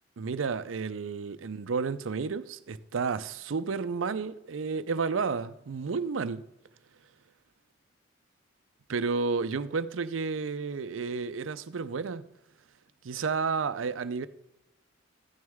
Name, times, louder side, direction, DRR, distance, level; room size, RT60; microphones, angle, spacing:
voice 1, 0.2-6.5 8.9-12.3 13.0-14.3, right 5 dB, 90° right, 0.5 m, -31 dB
13.5 x 9.4 x 3.5 m
head